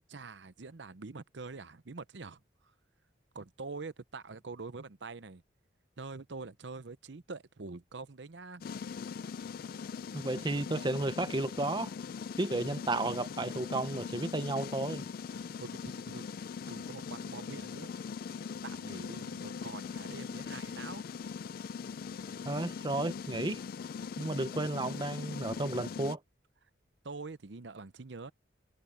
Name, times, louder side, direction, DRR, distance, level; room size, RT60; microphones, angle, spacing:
voice 1, 0.1-2.4 3.3-5.4 6.0-8.6 15.3-16.2 16.7-17.9 18.6-21.0 27.0-28.3, right 3 dB, 70° right, 0.8 m, -45 dB
sound 1, 8.6-26.2, left 6 dB, 50° left, 0.3 m, -41 dB
voice 2, 10.1-11.9 12.4-15.1 22.4-23.6 24.2-26.2, right 2 dB, 25° right, 0.7 m, -33 dB
head